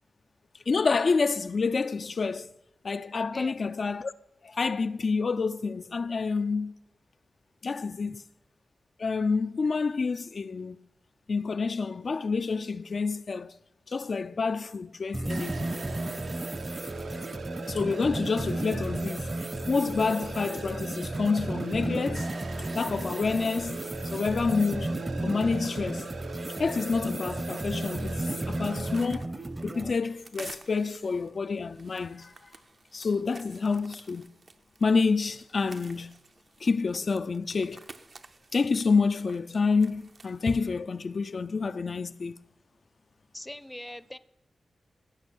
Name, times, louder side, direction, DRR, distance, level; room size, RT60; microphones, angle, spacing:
voice 1, 0.7-2.5 2.8-4.1 4.4-6.7 7.6-8.2 9.0-10.8 11.3-13.6 13.9-15.7 17.6-19.3 19.7-22.3 22.8-26.1 26.6-29.3 29.6-32.3 32.9-34.3 34.8-36.1 36.6-37.8 38.5-42.4, left 4 dB, 60° left, 0.3 m, -28 dB
sound 1, 15.1-29.9, right 1 dB, 30° right, 0.7 m, -34 dB
sound 2, 15.3-29.0, right 3 dB, 85° right, 1.0 m, -40 dB
sound 3, 28.4-40.6, right 3 dB, 55° right, 0.7 m, -52 dB
voice 2, 43.3-44.2, left 1 dB, 10° left, 0.5 m, -41 dB
16.0 x 6.2 x 6.1 m
cardioid pair, 65°, 0 cm